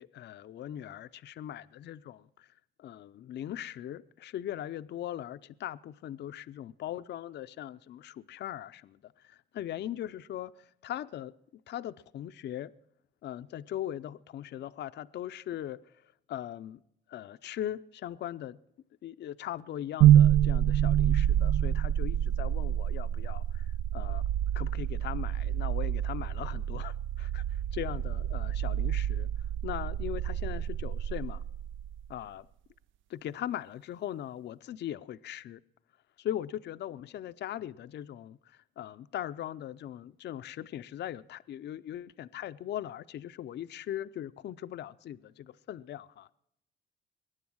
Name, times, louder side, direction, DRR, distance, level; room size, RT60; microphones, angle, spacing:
voice 1, 0.0-2.5 2.8-11.4 11.7-12.7 13.2-15.8 16.3-16.8 17.1-18.6 19.0-23.7 23.9-24.2 24.5-29.3 29.6-31.4 32.1-32.5 33.1-35.6 36.2-46.3, left 11 dB, 60° left, 0.5 m, -40 dB
sound 1, 20.0-32.1, right 11 dB, 75° right, 0.5 m, -27 dB
21.5 x 9.6 x 6.2 m
cardioid pair, 90°, 20 cm